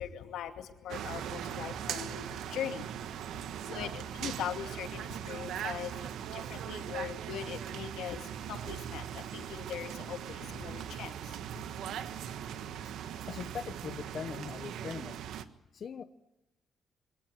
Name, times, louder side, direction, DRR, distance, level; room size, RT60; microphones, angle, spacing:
voice 1, 0.0-3.1 3.6-11.6, left 9 dB, 90° left, 7 dB, 2.4 m, -41 dB
sound 1, 0.9-15.4, right 9 dB, 85° right, 1.4 m, -40 dB
voice 2, 13.2-15.2 15.7-16.0, left 6 dB, 40° left, 9 dB, 1.1 m, -40 dB
24.5 x 18.0 x 9.4 m, 0.96 s
cardioid pair, 165°, 0 cm